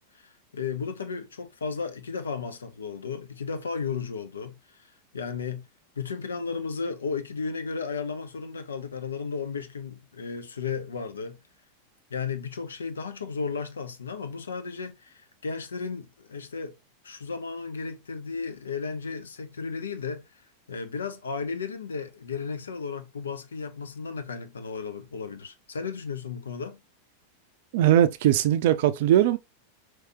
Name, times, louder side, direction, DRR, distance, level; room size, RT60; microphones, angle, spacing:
voice 1, 0.1-4.6 5.1-5.7 6.0-11.4 12.1-16.7 17.0-20.2 20.7-26.8, left 5 dB, 70° left, 0.7 m, -34 dB
voice 2, 27.7-29.4, right 11 dB, 50° right, 0.4 m, -20 dB
4.8 x 3.1 x 2.8 m
figure-of-eight pair, 90°, 0 cm